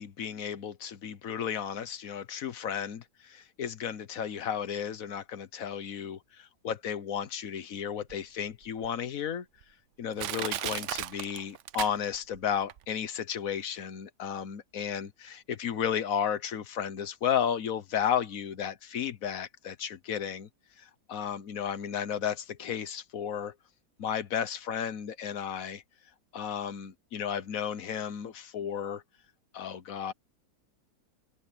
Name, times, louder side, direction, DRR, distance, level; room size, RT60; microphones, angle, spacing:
voice 1, 0.0-9.5 10.0-20.5 20.8-23.5 24.0-25.8 26.3-29.0 29.5-30.1, left 8 dB, 60° left, 1.4 m, -33 dB
Crushing, 8.1-8.2 8.8-8.9 9.6-9.7 10.2-12.4 12.7-12.8, right 12 dB, 65° right, 0.8 m, -35 dB
omnidirectional pair, 1.7 m